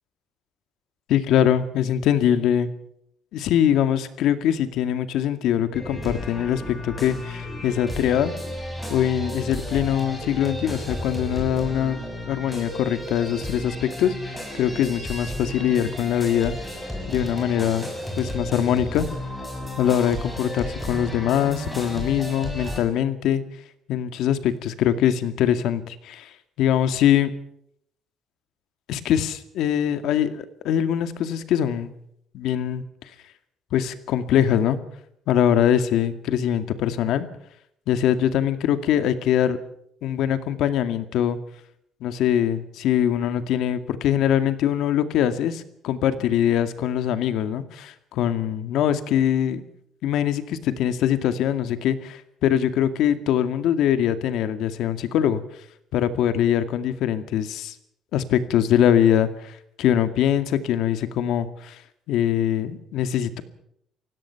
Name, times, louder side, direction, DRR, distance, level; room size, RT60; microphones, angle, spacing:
voice 1, 1.1-2.7 3.3-8.3 8.9-12.0 12.3-16.5 17.1-17.9 18.2-19.1 19.8-23.4 23.9-26.3 26.6-27.3 28.9-31.9 32.3-32.8 33.7-34.8 35.3-37.3 37.9-39.6 40.0-41.4 42.0-49.6 50.0-55.4 55.9-57.7 58.1-61.8 62.1-63.4, left 10 dB, 70° left, 10 dB, 2.1 m, -22 dB
sound 1, 5.7-22.8, equal, 5° left, 6.5 m, -33 dB
29.0 x 17.0 x 5.9 m, 0.71 s
cardioid pair, 155°, 0 cm